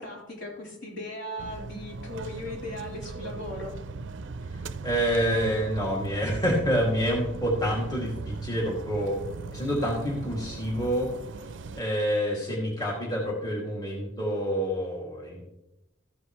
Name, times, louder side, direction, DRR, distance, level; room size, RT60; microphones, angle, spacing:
voice 1, 0.0-3.7, left 1 dB, 65° left, -4 dB, 4.3 m, -38 dB
sound 1, 1.4-11.8, right 4 dB, 75° right, 0.5 m, -38 dB
voice 2, 4.8-9.2 9.5-11.1 11.8-15.4, equal, 20° left, -4 dB, 2.2 m, -27 dB
14.0 x 10.0 x 3.1 m, 0.92 s
head